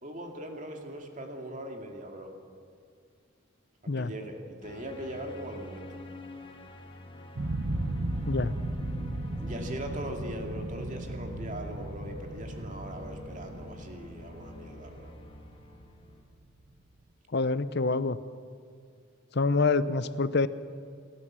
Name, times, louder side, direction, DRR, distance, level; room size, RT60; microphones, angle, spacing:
voice 1, 0.0-2.3 3.8-6.0 9.4-15.1, equal, 35° right, 3 dB, 2.4 m, -40 dB
sound 1, 4.6-16.2, left 1 dB, 25° left, 1.7 m, -47 dB
sound 2, 7.4-16.2, right 2 dB, 60° right, 1.2 m, -36 dB
voice 2, 17.3-18.2 19.3-20.5, left 3 dB, 50° left, 14 dB, 0.7 m, -26 dB
29.0 x 12.0 x 7.5 m, 2.3 s
head